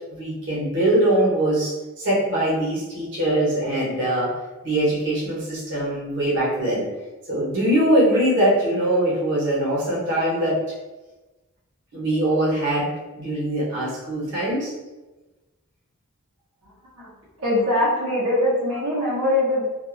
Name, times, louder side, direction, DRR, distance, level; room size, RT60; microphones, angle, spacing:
voice 1, 0.1-4.3 4.6-6.9 7.3-10.6 11.9-14.7, right 1 dB, 55° right, -8 dB, 1.1 m, -22 dB
voice 2, 17.4-19.6, left 1 dB, 85° right, -8 dB, 0.9 m, -22 dB
2.6 x 2.5 x 2.5 m, 1.1 s
head